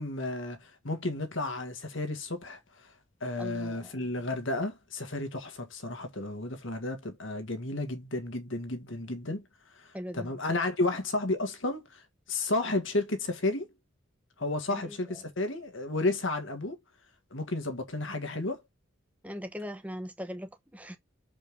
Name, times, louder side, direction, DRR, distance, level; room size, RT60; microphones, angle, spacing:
voice 1, 0.0-2.6 3.2-9.4 9.8-9.9 10.1-12.0 12.3-13.7 14.4-16.8 17.3-18.6, left 2 dB, 65° left, 1.9 m, -32 dB
voice 2, 3.4-4.0 9.9-10.3 14.7-15.2 19.2-21.0, equal, 5° right, 1.1 m, -40 dB
6.7 x 5.1 x 3.6 m
head